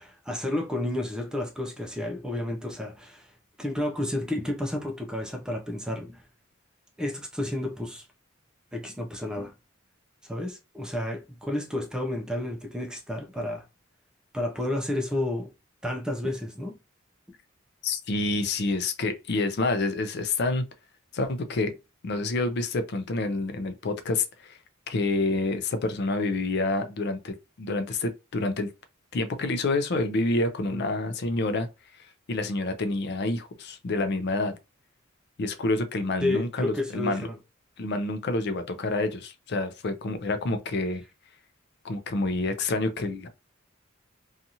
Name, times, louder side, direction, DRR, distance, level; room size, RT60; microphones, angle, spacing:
voice 1, 0.0-3.3 3.6-6.2 7.0-8.1 8.7-9.5 10.2-13.6 14.3-15.5 15.8-16.7 30.7-30.8 36.2-37.4, left 1 dB, 5° right, 0.4 m, -31 dB
voice 2, 17.8-20.7 21.1-21.7 22.0-24.6 24.9-28.7 29.1-31.7 32.0-34.5 35.4-37.3 37.8-41.0 41.8-43.3, left 2 dB, 55° left, 0.5 m, -28 dB
2.7 x 2.4 x 2.7 m
head